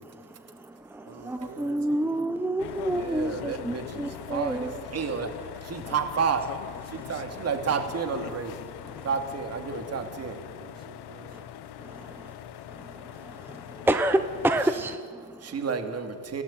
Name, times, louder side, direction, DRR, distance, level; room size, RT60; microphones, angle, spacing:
voice 1, 0.0-4.7 6.9-7.1 8.8-9.1 11.8-12.3 12.7-15.6, right 1 dB, 5° right, 0.8 m, -30 dB
voice 2, 0.7-2.5 10.3-13.9, right 5 dB, 55° right, 4.1 m, -50 dB
sound 1, 2.6-15.0, left 11 dB, 70° left, 1.3 m, -42 dB
voice 3, 2.9-6.5 6.9-8.6 9.0-10.4 15.4-16.4, right 6 dB, 40° right, 2.7 m, -31 dB
28.5 x 17.5 x 9.2 m
cardioid pair, 150°, 40 cm